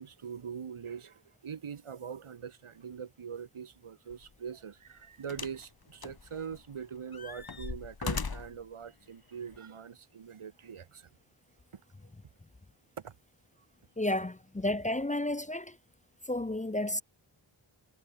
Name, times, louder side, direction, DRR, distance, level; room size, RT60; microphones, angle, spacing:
voice 1, 0.0-11.1 11.7-11.8 13.0-13.1, right 7 dB, 85° right, 4.1 m, -43 dB
sound 1, 4.1-4.3 5.3-5.7 6.0-6.7 7.1-8.6 9.5-9.6, left 5 dB, 50° left, 3.5 m, -38 dB
voice 2, 14.0-15.7 16.3-17.0, left 1 dB, 15° left, 0.9 m, -31 dB
wide cardioid pair, 75°, 49 cm